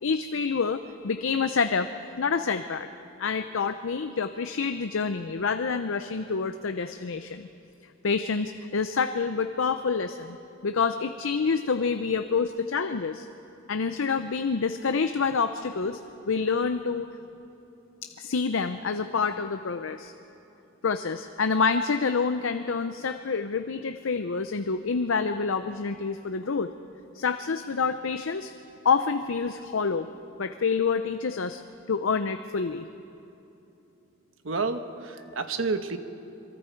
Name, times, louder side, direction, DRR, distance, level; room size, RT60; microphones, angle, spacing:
voice 1, 0.0-1.9 2.2-2.9 3.2-7.5 8.0-10.4 10.6-13.3 13.7-16.0 16.3-17.1 18.0-20.1 20.8-26.7 27.1-28.5 28.8-30.1 30.4-31.6 31.9-32.9, left 5 dB, 70° left, 9 dB, 0.6 m, -27 dB
voice 2, 34.4-36.0, right 4 dB, 70° right, 8 dB, 1.1 m, -29 dB
25.5 x 23.0 x 4.6 m, 2.9 s
head